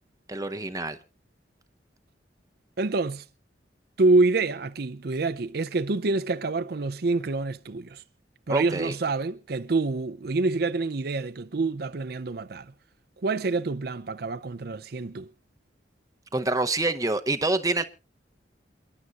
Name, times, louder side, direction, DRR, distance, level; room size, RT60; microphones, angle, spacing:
voice 1, 0.3-1.0 8.5-8.9 16.3-17.8, right 2 dB, 20° right, 0.8 m, -26 dB
voice 2, 2.8-3.2 4.0-8.0 8.5-12.7 13.2-15.3, right 3 dB, 60° right, 0.6 m, -26 dB
28.5 x 11.0 x 2.5 m
head